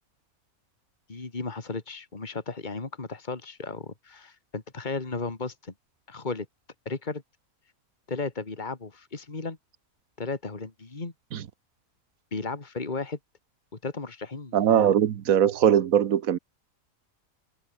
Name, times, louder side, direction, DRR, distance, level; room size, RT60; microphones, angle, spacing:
voice 1, 1.1-5.7 6.1-6.5 6.9-7.2 8.1-9.6 10.2-11.1 12.3-13.2 13.8-14.9, left 3 dB, 35° left, 2.4 m, -34 dB
voice 2, 14.5-16.4, right 10 dB, 80° right, 1.4 m, -21 dB
omnidirectional pair, 1.5 m